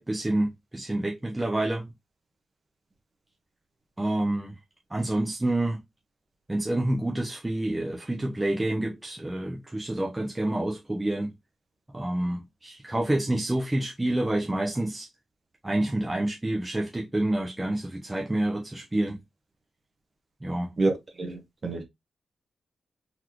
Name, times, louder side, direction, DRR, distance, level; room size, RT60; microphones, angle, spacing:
voice 1, 0.0-1.9 4.0-4.5 4.9-5.8 6.5-11.3 11.9-15.1 15.6-19.2 20.4-20.7, right 1 dB, 15° right, 0.7 m, -28 dB
voice 2, 21.2-21.8, right 2 dB, 35° right, 1.2 m, -27 dB
4.0 x 3.2 x 2.9 m
wide cardioid pair, 145°, 0 cm